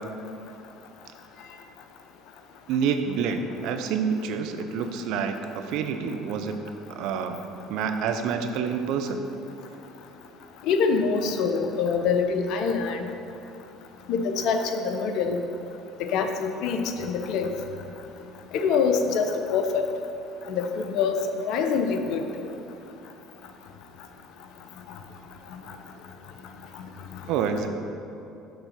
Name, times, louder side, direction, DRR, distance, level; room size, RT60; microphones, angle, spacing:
voice 1, 2.7-6.6 7.0-7.4 7.7-9.2 27.3-27.7, right 6 dB, 70° right, 7 dB, 0.5 m, -27 dB
voice 2, 10.6-13.0 14.1-15.4 16.1-17.5 18.5-19.9 20.5-21.2 21.5-22.5, left 5 dB, 65° left, 6 dB, 0.6 m, -25 dB
6.6 x 3.9 x 5.8 m, 2.8 s
hypercardioid pair, 70°, 0 cm